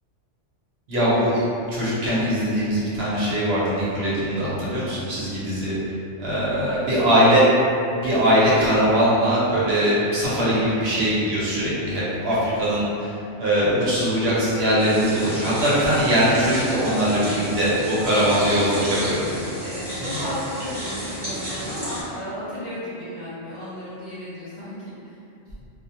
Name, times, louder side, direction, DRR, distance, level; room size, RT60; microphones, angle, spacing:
voice 1, 0.9-1.4 1.7-5.7 6.2-7.5 7.9-19.2 20.0-20.2, equal, 65° right, -9 dB, 0.9 m, -21 dB
voice 2, 6.6-7.3 18.2-25.0, equal, 50° left, -13 dB, 0.6 m, -34 dB
sound 1, 14.8-22.0, equal, 30° right, 0.5 m, -32 dB
2.3 x 2.1 x 2.7 m, 2.6 s
omnidirectional pair, 1.2 m